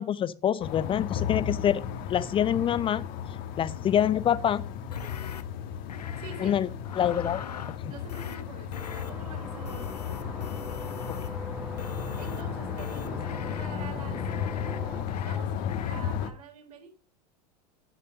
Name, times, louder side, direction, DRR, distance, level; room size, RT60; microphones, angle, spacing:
voice 1, 0.0-1.8 2.1-3.1 3.6-4.7 6.4-6.7 7.0-7.4 11.1-11.2, left 10 dB, 25° left, 0.6 m, -26 dB
sound 1, 0.6-16.3, left 8 dB, 45° left, 1.7 m, -35 dB
sound 2, 4.9-5.4 5.9-6.5 6.8-7.8 8.1-8.4 8.7-9.1 9.7-11.4 11.8-12.4 12.8-13.7 14.1-14.8 15.1-15.4 15.7-16.0, left 8 dB, 70° left, 1.0 m, -40 dB
voice 2, 6.1-6.5 7.9-10.3 11.8-13.3 13.6-14.2 15.1-16.9, right 6 dB, 65° right, 5.1 m, -46 dB
sound 3, 8.7-15.0, right 1 dB, 5° right, 1.9 m, -42 dB
11.0 x 9.4 x 5.1 m
figure-of-eight pair, 80°, 21 cm